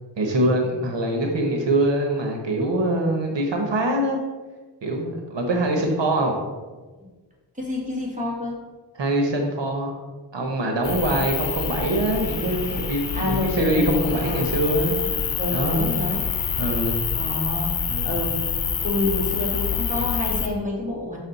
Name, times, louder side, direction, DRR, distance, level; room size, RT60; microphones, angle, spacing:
voice 1, 0.2-4.2 4.8-6.3 9.0-10.0 10.3-15.0 15.5-15.9 16.6-16.9 17.9-18.1, right 1 dB, 75° right, 2 dB, 1.1 m, -23 dB
voice 2, 7.6-8.6 13.1-14.3 15.4-16.2 17.1-17.7 18.1-18.4 18.8-21.2, left 2 dB, 15° right, -3 dB, 2.3 m, -28 dB
sound 1, 10.8-20.5, left 6 dB, 80° left, 0.8 m, -27 dB
6.2 x 6.2 x 4.0 m, 1.3 s
wide cardioid pair, 80°, 44 cm